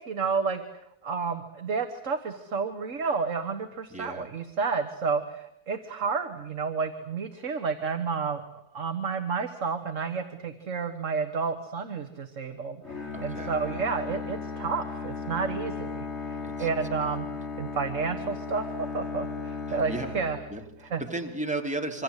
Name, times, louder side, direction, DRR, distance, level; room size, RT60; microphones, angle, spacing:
voice 1, 0.0-17.3 17.6-20.4 20.9-21.0, right 5 dB, 55° right, 7 dB, 1.8 m, -31 dB
voice 2, 3.9-4.3 13.1-13.9 16.4-16.7 17.0-17.2 19.7-20.1 20.5-22.0, right 2 dB, 5° right, 3 dB, 2.9 m, -35 dB
Bowed string instrument, 12.8-21.1, left 4 dB, 45° left, 3.9 m, -36 dB
26.0 x 25.5 x 8.2 m, 0.75 s
omnidirectional pair, 1.6 m